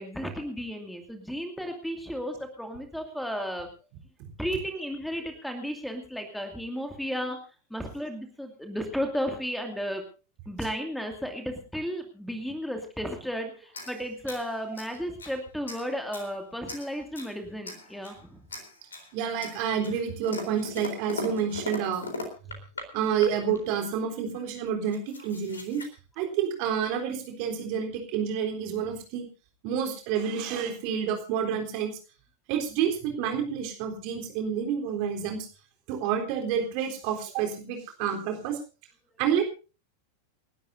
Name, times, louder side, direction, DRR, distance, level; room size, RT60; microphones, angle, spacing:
voice 1, 0.0-3.7 4.4-7.4 7.7-10.0 10.5-18.4, equal, ahead, 5 dB, 2.4 m, -34 dB
sound 1, 13.7-15.4 15.7-16.3 16.7-17.4 17.6-18.2 18.5-19.1 19.4-22.9 23.2-23.6 24.4-24.5 24.7-25.9, left 2 dB, 70° left, 4.0 m, -39 dB
voice 2, 19.1-22.1 22.9-25.8 26.2-29.3 29.6-32.0 32.5-35.5 35.9-38.6 39.2-39.4, right 8 dB, 45° right, 4 dB, 3.7 m, -29 dB
29.0 x 12.0 x 2.7 m, 0.33 s
figure-of-eight pair, 90°, 0 cm